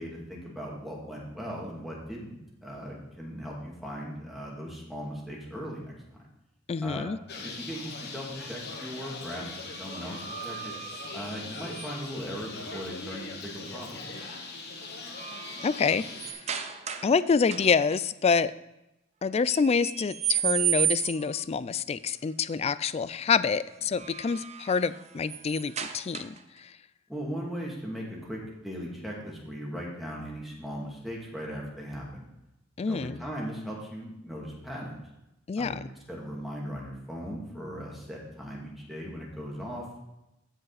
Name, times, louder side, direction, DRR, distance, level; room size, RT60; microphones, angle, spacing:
voice 1, 0.0-5.9 6.8-10.7 11.1-14.0 27.1-32.2 32.8-35.0 35.6-40.0, equal, ahead, -3 dB, 2.2 m, -38 dB
voice 2, 6.7-7.2 15.6-16.6 17.0-18.5 19.2-26.7 32.8-33.2 35.5-35.8, left 5 dB, 30° left, 16 dB, 0.3 m, -27 dB
Bird, 7.3-16.3, left 3 dB, 55° left, 1.3 m, -41 dB
sound 1, 9.3-12.2 14.0-14.3 14.7-17.2 17.5-18.0 19.5-21.4 23.7-26.6, right 11 dB, 35° right, 0.7 m, -34 dB
15.5 x 5.3 x 4.1 m, 0.91 s
head